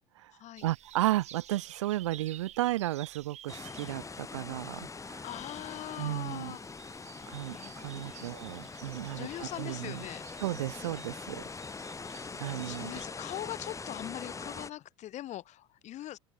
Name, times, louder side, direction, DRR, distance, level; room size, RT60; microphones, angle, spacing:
sound 1, 0.6-13.1, right 12 dB, 50° right, 3.7 m, -53 dB
voice 1, 0.6-5.2 6.0-6.5 7.3-10.0 10.4-11.4 12.4-12.9, right 16 dB, 85° right, 2.8 m, -34 dB
sound 2, 3.5-14.7, left 4 dB, 20° left, 4.8 m, -43 dB
voice 2, 5.2-6.6 7.6-8.4 9.2-10.2 12.6-16.2, left 13 dB, 50° left, 4.2 m, -41 dB
open air
hypercardioid pair, 85°, 15 cm